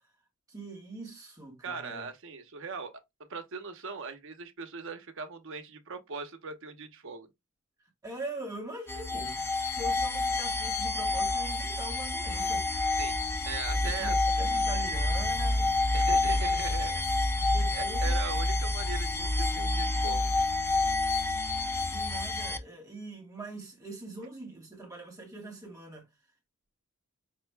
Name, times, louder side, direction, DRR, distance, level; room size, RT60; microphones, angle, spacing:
voice 1, 0.5-2.1 8.0-12.7 13.8-15.7 17.5-18.2 21.9-26.1, right 2 dB, 15° right, 1.0 m, -43 dB
voice 2, 1.6-2.9 3.3-7.3 13.0-13.2 13.4-14.2 15.9-17.0 17.7-20.3 20.6-20.7, right 5 dB, 60° right, 0.8 m, -40 dB
sound 1, 8.9-22.6, left 2 dB, 10° left, 0.4 m, -28 dB
5.2 x 2.2 x 3.2 m
head